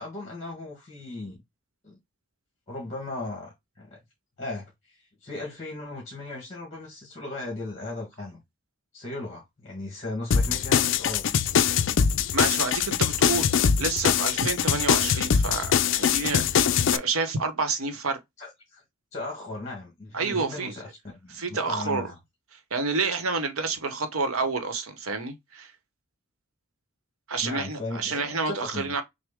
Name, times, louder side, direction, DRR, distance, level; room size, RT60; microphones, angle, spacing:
voice 1, 0.0-1.4 1.8-1.9 2.7-4.0 4.4-8.4 8.9-11.2 18.4-18.8 19.1-22.1 27.4-29.0, left 2 dB, 30° left, 1.4 m, -37 dB
sound 1, 10.3-17.0, left 7 dB, 60° left, 0.4 m, -23 dB
voice 2, 12.3-18.2 20.1-20.7 21.3-22.1 22.7-25.7 27.3-29.0, right 4 dB, 80° right, 1.0 m, -29 dB
6.2 x 2.1 x 3.5 m
head